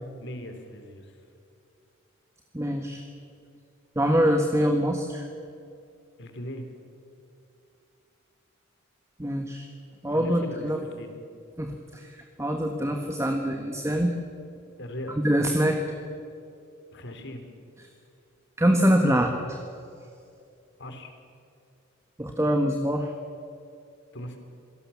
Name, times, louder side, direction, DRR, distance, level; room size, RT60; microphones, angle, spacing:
voice 1, 0.2-1.1 6.2-6.7 10.1-11.2 11.9-12.1 14.8-15.2 16.9-17.5 20.8-21.1 24.1-24.4, left 1 dB, 60° left, 6 dB, 3.5 m, -39 dB
voice 2, 2.5-3.0 3.9-5.3 9.2-9.7 10.0-10.8 11.6-14.2 15.1-15.8 18.6-19.6 22.2-23.1, equal, 15° right, 3 dB, 1.5 m, -24 dB
26.5 x 18.5 x 7.2 m, 2.6 s
head